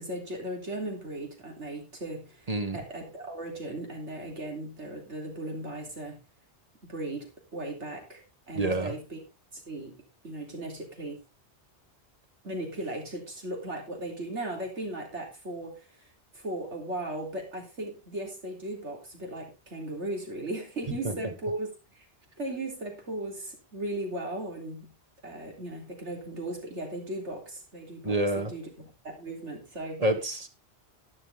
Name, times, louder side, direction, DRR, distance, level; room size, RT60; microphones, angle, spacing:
voice 1, 0.0-6.2 6.9-8.2 8.5-9.2 9.5-10.0 10.2-11.2 12.4-22.1 22.4-24.9 25.2-28.7 29.0-30.1, right 1 dB, 85° right, 2 dB, 3.7 m, -37 dB
voice 2, 8.5-8.9 21.0-21.1 28.0-28.5 30.0-30.5, right 1 dB, 35° right, 7 dB, 1.4 m, -27 dB
12.0 x 10.0 x 3.6 m, 0.27 s
omnidirectional pair, 1.2 m